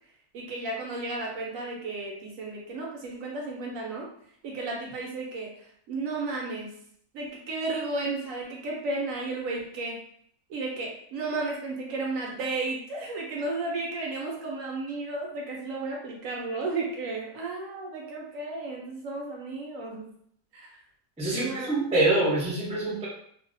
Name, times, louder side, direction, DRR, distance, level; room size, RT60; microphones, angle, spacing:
voice 1, 0.3-4.1 4.4-6.7 7.1-10.0 10.5-20.1 20.5-20.7 21.3-21.7, right 3 dB, 70° right, -1 dB, 1.0 m, -33 dB
voice 2, 21.2-23.1, right 2 dB, 10° right, -6 dB, 0.4 m, -25 dB
2.6 x 2.2 x 2.5 m, 0.65 s
omnidirectional pair, 1.5 m